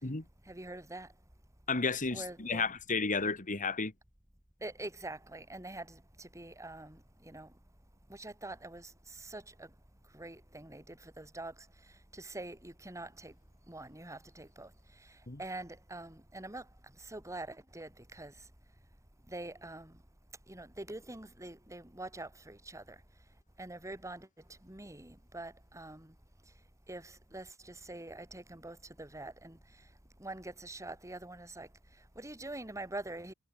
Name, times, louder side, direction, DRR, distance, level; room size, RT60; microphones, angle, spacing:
voice 1, 0.4-1.1 2.1-2.7 4.6-7.5 8.1-9.7 10.1-13.4 13.7-18.5 19.3-20.0 20.5-23.0 23.6-26.2 26.9-29.9 30.2-33.3, right 2 dB, 15° right, 3.7 m, -45 dB
voice 2, 1.7-3.9 15.3-15.4, left 4 dB, 35° left, 2.0 m, -32 dB
head